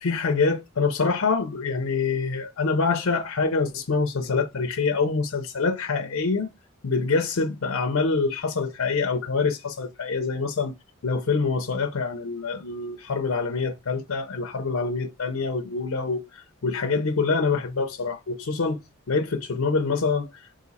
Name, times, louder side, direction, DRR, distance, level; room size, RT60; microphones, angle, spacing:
voice 1, 0.0-6.5 6.8-10.7 11.0-18.8 19.1-20.3, left 4 dB, 70° left, 0.6 m, -25 dB
4.0 x 2.6 x 4.0 m
head